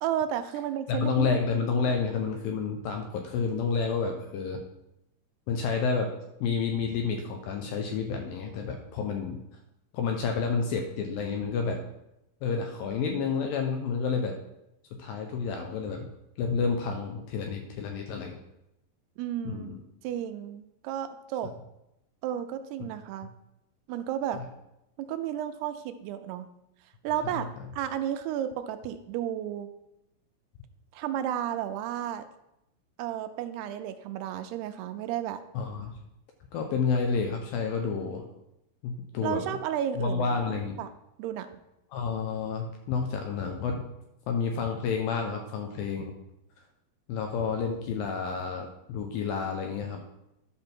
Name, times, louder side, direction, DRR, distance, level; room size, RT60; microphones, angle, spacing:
voice 1, 0.0-1.4 19.2-19.7 20.0-21.5 22.2-23.3 23.9-24.4 25.0-26.5 27.0-27.5 27.7-29.7 30.9-32.3 33.0-35.4 39.2-40.9 41.2-41.5, right 10 dB, 80° right, 9 dB, 2.6 m, -32 dB
voice 2, 0.9-4.6 5.5-6.1 6.4-9.4 9.9-11.8 12.4-14.4 15.0-16.1 16.4-18.4 19.5-19.8 24.4-24.5 27.3-27.5 35.5-35.9 36.5-38.3 38.8-39.5 40.0-40.8 41.9-43.8 44.3-46.1 47.1-50.0, left 5 dB, 75° left, 4 dB, 2.2 m, -30 dB
11.0 x 6.1 x 4.4 m, 0.86 s
omnidirectional pair, 4.8 m